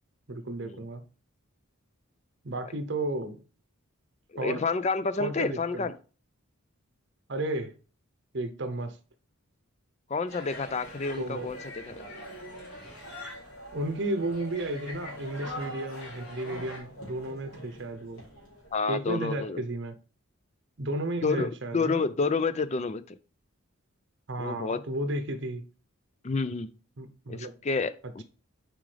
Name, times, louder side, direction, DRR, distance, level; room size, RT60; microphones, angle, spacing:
voice 1, 0.3-1.0 2.4-3.4 4.4-4.6 5.2-5.9 7.3-7.7 8.3-9.0 11.2-11.5 13.7-18.2 18.9-19.9 20.8-22.0 24.3-25.6 27.0-27.5, right 1 dB, 55° right, 0.8 m, -33 dB
voice 2, 4.3-5.9 10.1-12.0 18.7-19.6 21.2-23.2 24.4-24.8 26.2-26.7 27.3-28.2, left 4 dB, 30° left, 0.4 m, -29 dB
sound 1, 10.3-16.8, left 1 dB, 55° left, 2.8 m, -46 dB
sound 2, 10.5-18.8, right 1 dB, 90° left, 3.2 m, -45 dB
7.5 x 4.9 x 3.3 m
head